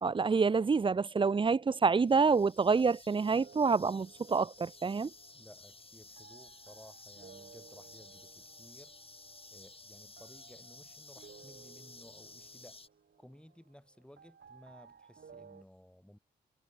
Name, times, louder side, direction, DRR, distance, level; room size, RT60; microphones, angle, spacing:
voice 1, 0.0-5.1, right 5 dB, 25° right, 0.5 m, -27 dB
sound 1, 0.9-15.6, right 6 dB, 55° right, 6.0 m, -59 dB
sound 2, 2.0-12.9, left 3 dB, 25° left, 3.4 m, -54 dB
voice 2, 5.3-8.9 9.5-12.8 13.2-16.2, equal, 5° left, 5.5 m, -57 dB
supercardioid pair, 45°, 21 cm